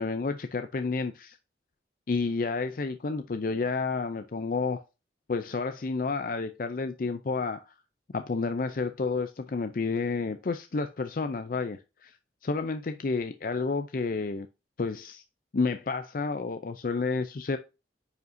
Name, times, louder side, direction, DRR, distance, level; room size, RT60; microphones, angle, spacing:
voice 1, 0.0-1.4 2.1-4.8 5.3-7.7 8.1-12.1 12.4-14.5 14.8-15.2 15.5-17.6, left 4 dB, 50° left, 0.4 m, -30 dB
9.3 x 5.2 x 2.7 m
head